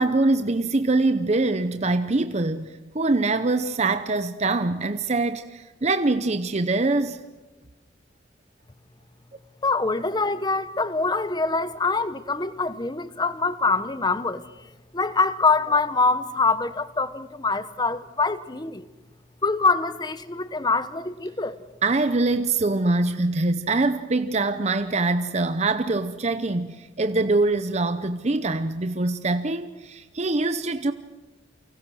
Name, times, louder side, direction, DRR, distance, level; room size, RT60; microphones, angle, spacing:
voice 1, 0.0-7.2 21.8-30.9, right 2 dB, 35° right, 0.8 m, -24 dB
voice 2, 9.6-14.4 14.9-18.9 19.4-21.6, left 3 dB, 20° left, 1.0 m, -24 dB
30.0 x 24.5 x 6.3 m
head